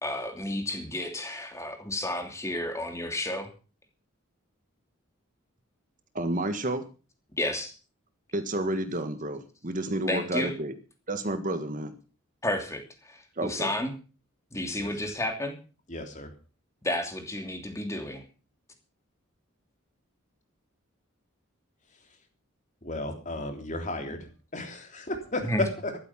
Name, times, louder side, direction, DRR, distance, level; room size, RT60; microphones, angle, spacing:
voice 1, 0.0-3.5 7.4-7.7 10.1-10.5 12.4-13.9 14.5-15.6 16.8-18.2 25.4-25.6, left 1 dB, 15° left, 5 dB, 2.9 m, -31 dB
voice 2, 6.1-6.8 8.3-10.7 11.1-11.9 13.4-13.7, right 1 dB, 40° right, 9 dB, 1.7 m, -30 dB
voice 3, 15.9-16.3 22.8-24.2 24.5-25.4, left 1 dB, 35° left, 5 dB, 3.4 m, -35 dB
14.0 x 12.5 x 5.9 m, 0.35 s
head